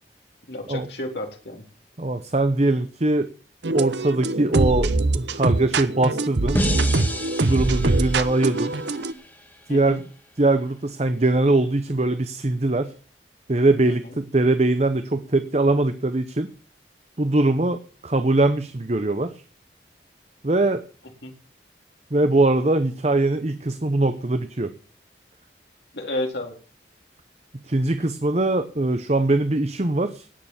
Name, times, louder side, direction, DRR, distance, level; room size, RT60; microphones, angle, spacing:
voice 1, 0.5-1.6 7.5-7.8 9.7-10.0 13.8-14.2 21.2-21.3 25.9-26.6, left 1 dB, 70° left, 2 dB, 3.8 m, -32 dB
voice 2, 2.0-3.3 3.7-6.6 7.4-8.7 9.7-10.0 10.4-12.9 13.5-16.5 17.2-17.8 18.0-19.3 20.4-20.8 22.1-24.7 27.7-30.3, right 2 dB, 35° right, 10 dB, 0.9 m, -21 dB
sound 1, 3.6-9.1, right 2 dB, 80° right, 0.9 m, -23 dB
sound 2, 6.5-9.7, equal, 10° left, 2.3 m, -30 dB
18.0 x 6.9 x 7.2 m, 0.39 s
head